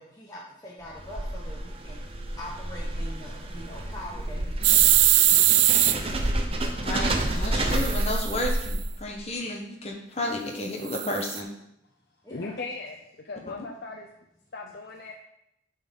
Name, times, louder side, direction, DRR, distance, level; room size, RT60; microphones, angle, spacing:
voice 1, 0.0-5.1 10.5-10.6 12.2-12.5, left 1 dB, 20° left, -5 dB, 1.0 m, -43 dB
sound 1, 0.8-9.2, right 1 dB, 30° right, 0.7 m, -30 dB
sound 2, 4.6-5.9 7.7-8.8 10.9-11.4, right 13 dB, 85° right, 0.5 m, -21 dB
voice 2, 6.8-11.5, left 1 dB, 35° left, 0 dB, 1.2 m, -32 dB
voice 3, 12.3-14.1 14.5-15.1, left 3 dB, 55° left, 0 dB, 0.7 m, -38 dB
8.2 x 4.2 x 5.4 m, 0.80 s
head